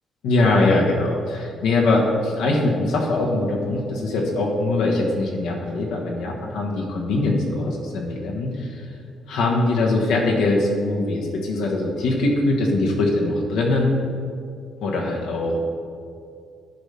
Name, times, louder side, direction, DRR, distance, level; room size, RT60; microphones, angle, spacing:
voice 1, 0.2-8.7 9.3-13.9 14.8-15.6, left 2 dB, 90° left, -1 dB, 1.3 m, -22 dB
10.5 x 5.4 x 3.4 m, 2.4 s
cardioid pair, 90°, 0 cm